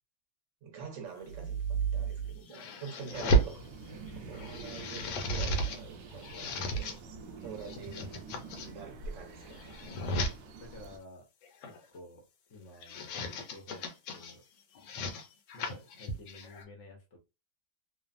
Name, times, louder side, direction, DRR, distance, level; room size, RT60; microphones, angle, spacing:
voice 1, 0.6-3.6 4.3-7.0 7.4-8.3 8.5-9.9, right 6 dB, 55° right, 0.9 m, -46 dB
sound 1, 1.3-3.6 4.1-5.8 6.1-7.0 7.5-8.7 9.3-10.3 11.4-11.8 12.6-14.3 14.7-16.6, right 2 dB, 85° left, 1.4 m, -33 dB
voice 2, 3.1-4.1 10.1-11.3 11.6-12.2 12.5-13.8 14.1-14.4 15.5-17.2, left 1 dB, 65° left, 0.7 m, -51 dB
sound 2, 3.1-11.0, right 3 dB, 80° right, 0.7 m, -47 dB
3.1 x 2.0 x 2.4 m
omnidirectional pair, 2.0 m